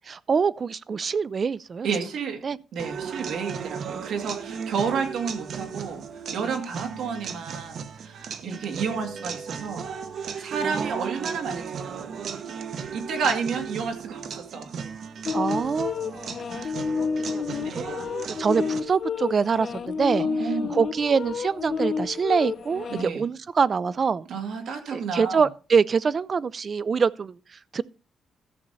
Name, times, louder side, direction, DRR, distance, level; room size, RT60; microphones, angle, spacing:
voice 1, 0.0-1.9 2.4-2.6 6.4-6.5 8.5-8.6 10.3-11.1 15.3-16.3 16.6-24.3 24.9-27.8, right 5 dB, 40° right, 0.4 m, -25 dB
voice 2, 1.8-2.4 2.7-9.9 10.4-12.1 12.9-14.7 17.6-18.1 20.2-20.7 22.9-23.2 24.3-25.4, right 5 dB, 90° right, 2.1 m, -31 dB
sound 1, 2.8-18.8, right 6 dB, 65° right, 0.9 m, -36 dB
sound 2, 15.2-23.0, left 5 dB, 50° left, 0.6 m, -30 dB
13.5 x 6.8 x 4.0 m
cardioid pair, 130°, 0 cm